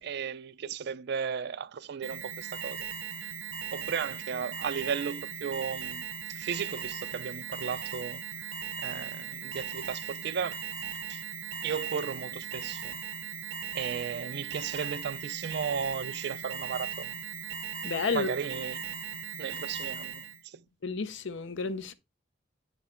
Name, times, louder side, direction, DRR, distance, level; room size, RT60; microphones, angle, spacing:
voice 1, 0.0-2.9 3.7-8.2 8.8-10.6 11.1-11.2 11.6-13.0 13.7-17.1 18.1-18.9 19.4-20.6, right 6 dB, 55° right, 0.4 m, -35 dB
Alarm, 2.0-20.4, right 7 dB, 75° right, 0.8 m, -38 dB
voice 2, 17.8-18.3 20.8-21.9, left 4 dB, 65° left, 0.7 m, -31 dB
9.2 x 3.9 x 4.4 m
head